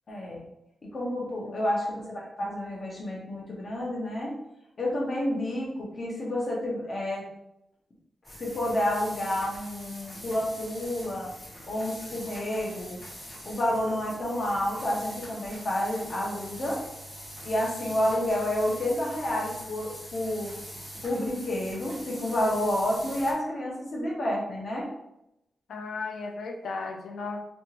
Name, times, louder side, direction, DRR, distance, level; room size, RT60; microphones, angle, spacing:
voice 1, 0.1-0.4 0.8-4.4 4.8-7.2 8.4-11.3 11.7-13.0 13.4-16.8 17.4-20.5 21.0-24.9, left 1 dB, 40° left, -3 dB, 0.9 m, -29 dB
voice 2, 1.5-1.8 25.7-27.4, left 4 dB, 75° left, 2 dB, 0.5 m, -36 dB
sound 1, 8.2-23.3, equal, 15° left, 1.2 m, -43 dB
3.5 x 2.8 x 2.5 m, 0.85 s
wide cardioid pair, 155°, 0 cm